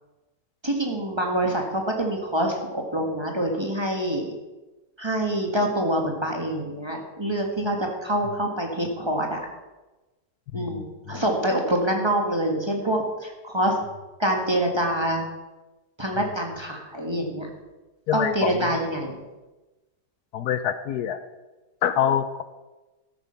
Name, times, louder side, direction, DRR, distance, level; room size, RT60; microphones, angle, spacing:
voice 1, 0.6-4.3 5.0-9.5 10.5-13.8 14.2-15.2 16.0-17.5 18.1-19.2, right 1 dB, 15° right, 1 dB, 1.5 m, -26 dB
voice 2, 10.5-11.2 18.1-18.5 20.3-21.2 21.8-22.4, left 9 dB, 75° left, 11 dB, 1.1 m, -26 dB
13.0 x 8.1 x 5.7 m, 1.1 s
omnidirectional pair, 1.8 m